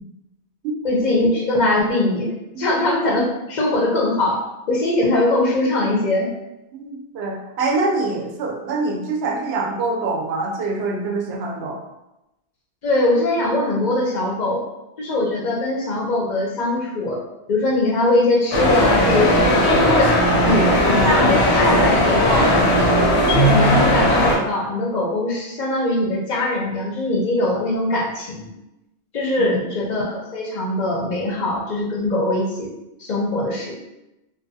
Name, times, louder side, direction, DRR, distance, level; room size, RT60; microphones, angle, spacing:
voice 1, 0.8-4.4 4.7-6.3 12.8-14.6 15.0-17.2 17.5-22.7 23.2-28.5 29.1-32.7 33.0-33.8, left 2 dB, 50° left, -3 dB, 0.6 m, -21 dB
voice 2, 6.7-11.8 29.4-29.6, right 3 dB, 75° right, 0 dB, 0.8 m, -25 dB
sound 1, 18.5-24.4, equal, 80° left, 0.9 m, -17 dB
2.5 x 2.3 x 2.6 m, 0.91 s
omnidirectional pair, 1.1 m